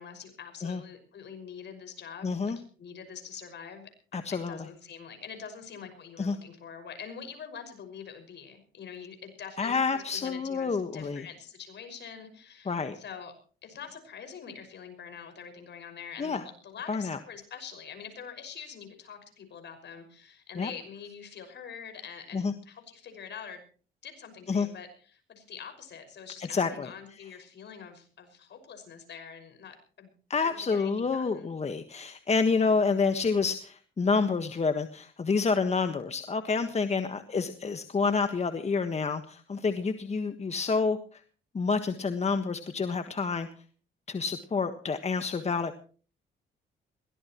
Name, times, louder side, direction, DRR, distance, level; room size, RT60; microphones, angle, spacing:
voice 1, 0.0-3.9 4.3-13.3 13.6-23.6 24.0-30.1 30.4-31.5 32.5-32.8 36.8-37.2, left 7 dB, 60° left, 7 dB, 5.8 m, -45 dB
voice 2, 2.2-2.6 4.1-4.6 6.2-6.4 9.6-11.2 12.6-12.9 16.2-16.4 16.9-17.2 20.6-20.7 22.3-22.5 24.5-24.7 26.5-26.9 30.3-41.2 41.5-43.5 44.1-45.8, left 4 dB, 35° left, 8 dB, 1.5 m, -28 dB
22.0 x 17.5 x 3.1 m, 0.40 s
cardioid pair, 90°, 20 cm